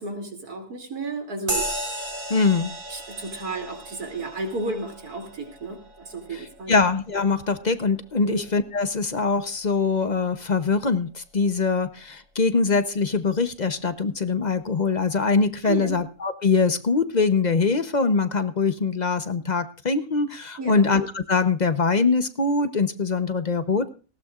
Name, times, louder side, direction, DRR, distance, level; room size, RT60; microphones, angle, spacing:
voice 1, 0.0-1.7 2.9-6.8 8.2-8.4 15.6-16.0 20.6-20.9, right 3 dB, 90° right, 4 dB, 3.3 m, -32 dB
sound 1, 1.5-9.4, right 1 dB, 35° right, 2.8 m, -36 dB
voice 2, 2.3-2.7 6.7-23.9, left 4 dB, 35° left, 10 dB, 0.8 m, -23 dB
19.0 x 16.0 x 2.4 m, 0.35 s
omnidirectional pair, 1.6 m